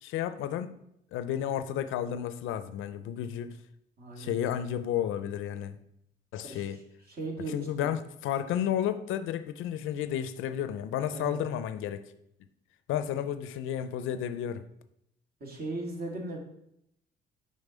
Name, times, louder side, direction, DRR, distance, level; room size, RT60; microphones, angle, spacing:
voice 1, 0.0-0.8 1.1-3.6 4.2-5.8 6.3-6.8 7.5-12.0 12.9-14.6, left 10 dB, 85° left, 11 dB, 0.5 m, -32 dB
voice 2, 4.0-4.4 6.4-6.8 7.1-7.7 11.0-11.4 15.4-16.4, right 2 dB, 50° right, 0 dB, 1.7 m, -37 dB
5.5 x 3.7 x 5.0 m, 0.77 s
cardioid pair, 90°, 20 cm